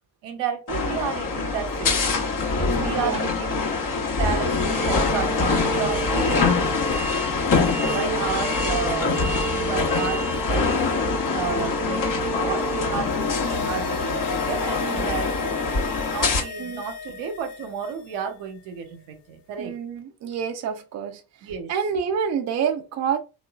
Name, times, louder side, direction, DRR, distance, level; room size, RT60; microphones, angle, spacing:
voice 1, 0.2-2.1 2.5-3.6 3.9-6.6 7.9-11.0 11.3-12.0 12.3-15.5 16.1-19.7 21.4-21.7, right 7 dB, 75° right, 0.8 m, -32 dB
sound 1, 0.7-16.4, left 3 dB, 45° left, 1.0 m, -24 dB
voice 2, 2.7-3.3 6.2-6.6 7.7-8.3 14.8-15.1 16.6-16.8 19.6-23.2, right 7 dB, 40° right, 0.5 m, -29 dB
sound 2, 12.7-18.2 18.4-18.5, left 6 dB, 65° left, 0.7 m, -35 dB
3.0 x 2.4 x 2.3 m
hypercardioid pair, 45°, 45 cm